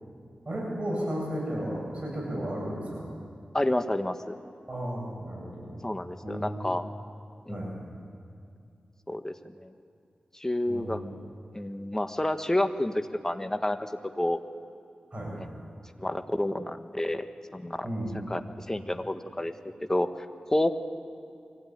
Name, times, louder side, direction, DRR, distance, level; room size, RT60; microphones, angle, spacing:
voice 1, 0.4-3.1 4.7-5.7 6.2-6.7 7.5-7.7 10.7-11.0 15.1-15.4 17.8-18.2, equal, 40° right, -3 dB, 7.9 m, -34 dB
voice 2, 3.5-4.3 5.8-6.8 7.5-7.8 9.1-9.7 10.4-11.0 11.5-13.9 14.2-14.4 16.0-17.3 17.5-17.9 18.3-18.4 18.7-19.5 19.9-20.1 20.5-20.7, left 1 dB, 20° left, 8 dB, 1.3 m, -29 dB
24.0 x 16.0 x 9.3 m, 2.4 s
cardioid pair, 50°, 3 cm